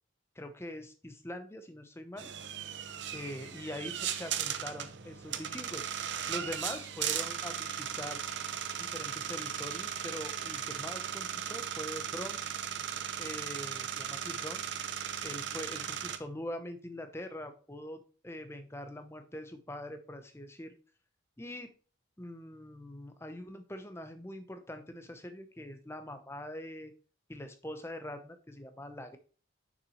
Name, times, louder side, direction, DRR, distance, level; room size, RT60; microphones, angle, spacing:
voice 1, 0.4-2.3 3.1-5.9 6.3-8.2 8.8-12.4 13.2-14.6 15.2-20.7 21.4-21.7 22.2-26.9 27.3-29.2, left 1 dB, 15° left, 8 dB, 0.8 m, -43 dB
sound 1, 2.2-16.2, right 9 dB, 65° right, 0.7 m, -37 dB
6.7 x 6.0 x 3.1 m, 0.38 s
head